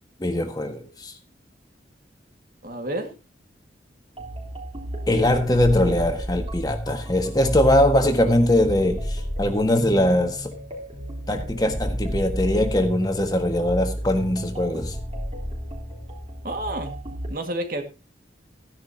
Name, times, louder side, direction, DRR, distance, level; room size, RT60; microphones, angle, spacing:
voice 1, 0.2-1.1 5.1-10.6 11.3-15.0, left 1 dB, 20° left, 1.6 m, -21 dB
voice 2, 2.6-3.1 16.4-17.0 17.3-17.8, right 1 dB, 50° right, 2.0 m, -29 dB
sound 1, 4.2-17.3, equal, 35° right, 3.6 m, -32 dB
15.0 x 10.5 x 2.9 m
head